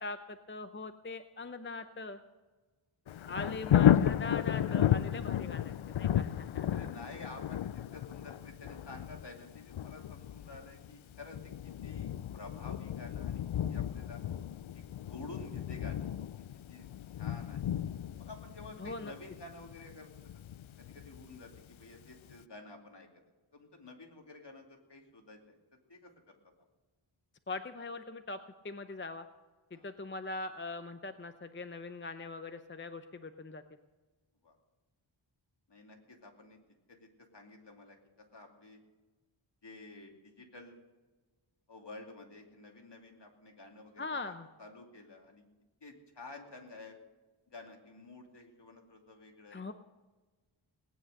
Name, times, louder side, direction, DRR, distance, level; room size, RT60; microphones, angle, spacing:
voice 1, 0.0-2.2 3.3-6.7 18.8-19.1 27.5-28.4 28.6-29.3 29.7-33.6 44.0-44.5 49.5-49.7, left 3 dB, 25° left, 9 dB, 0.7 m, -41 dB
Thunder, 3.1-21.8 22.3-22.4, left 10 dB, 75° left, 0.6 m, -33 dB
voice 2, 6.6-13.4 13.7-14.2 14.7-14.8 15.1-16.9 17.2-17.6 18.2-20.1 20.8-23.1 23.5-25.6 25.9-26.4 29.7-29.9 34.4-34.6 35.7-36.6 36.9-38.8 39.6-40.8 41.7-44.3 44.6-45.5 45.8-47.0 47.5-49.6, left 2 dB, 55° left, 2 dB, 2.7 m, -51 dB
18.5 x 9.9 x 6.6 m, 1.2 s
wide cardioid pair, 75°, 49 cm